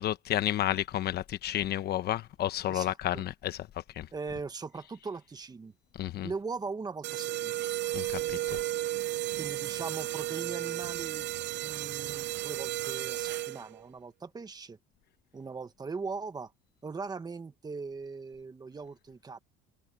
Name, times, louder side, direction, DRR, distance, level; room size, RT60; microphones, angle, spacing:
voice 1, 0.0-3.6 4.0-4.1 6.0-6.3 7.9-8.2, left 12 dB, 50° left, 1.1 m, -31 dB
voice 2, 2.7-3.2 4.1-5.7 6.2-7.7 9.3-11.3 11.6-14.8 15.3-16.5 16.8-19.4, right 4 dB, 20° right, 1.4 m, -40 dB
sound 1, 7.0-13.8, right 14 dB, 60° right, 0.6 m, -34 dB
cardioid pair, 125°, 21 cm